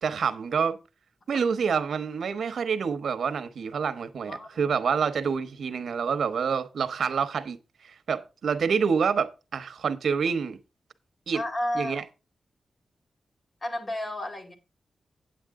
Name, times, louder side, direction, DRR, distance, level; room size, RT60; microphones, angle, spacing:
voice 1, 0.0-0.8 1.3-7.6 7.8-10.6 11.3-11.4 11.7-12.0, right 6 dB, 80° right, 1.0 m, -27 dB
voice 2, 4.3-4.7 11.3-12.1 13.6-14.5, left 1 dB, 35° left, 2.1 m, -32 dB
8.8 x 8.7 x 3.6 m
wide cardioid pair, 135°, 0 cm